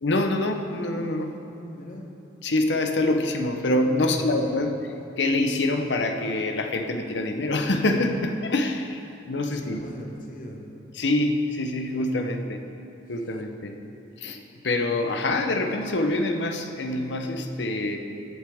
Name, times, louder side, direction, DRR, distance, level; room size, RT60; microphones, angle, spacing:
voice 1, 0.0-1.4 2.4-4.7 5.2-9.0 9.3-9.8 11.0-12.6 13.1-13.7 14.2-18.0, left 2 dB, 70° left, 5 dB, 0.8 m, -25 dB
voice 2, 1.6-2.1 4.0-4.5 9.5-10.7 13.2-13.4, equal, 45° left, 1 dB, 1.3 m, -40 dB
16.0 x 8.1 x 3.5 m, 2.7 s
head